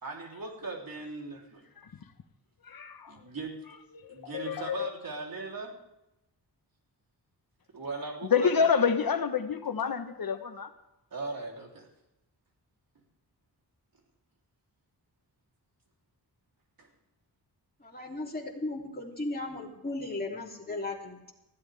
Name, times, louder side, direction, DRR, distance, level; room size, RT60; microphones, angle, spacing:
voice 1, 0.0-1.7 3.1-3.5 4.1-5.7 7.7-8.8 11.1-11.9 16.8-16.9, right 3 dB, 60° right, 1 dB, 3.4 m, -38 dB
voice 2, 2.6-3.2 3.9-4.9 8.3-10.7, left 6 dB, 60° left, 8 dB, 1.2 m, -28 dB
voice 3, 17.8-21.3, left 2 dB, 25° left, -1 dB, 3.2 m, -36 dB
19.5 x 15.5 x 3.5 m, 0.91 s
wide cardioid pair, 90°, 39 cm